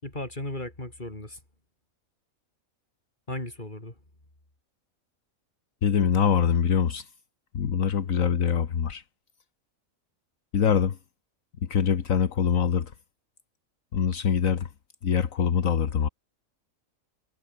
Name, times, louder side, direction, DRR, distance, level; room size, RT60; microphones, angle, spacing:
voice 1, 0.0-1.4 3.3-3.9, left 1 dB, 35° left, 5.7 m, -36 dB
voice 2, 5.8-7.1 7.5-9.0 10.5-11.0 11.7-12.9 13.9-14.7 15.0-16.1, left 7 dB, 70° left, 1.7 m, -24 dB
omnidirectional pair, 1.4 m